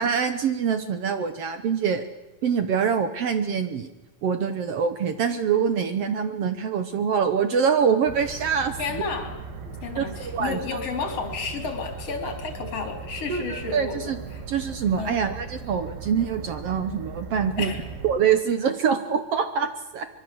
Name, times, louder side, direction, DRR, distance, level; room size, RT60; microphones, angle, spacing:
voice 1, 0.0-2.1 2.4-3.9 4.2-9.0 10.0-10.6 13.3-14.2 14.5-17.7 18.0-20.1, right 7 dB, 65° right, 9 dB, 1.5 m, -25 dB
sound 1, 8.1-18.1, right 5 dB, 85° right, 4.0 m, -38 dB
voice 2, 8.8-9.4 9.8-14.4 15.0-15.2 17.6-17.8, left 4 dB, 45° left, 5 dB, 4.5 m, -32 dB
24.0 x 23.0 x 7.9 m, 1.1 s
omnidirectional pair, 4.0 m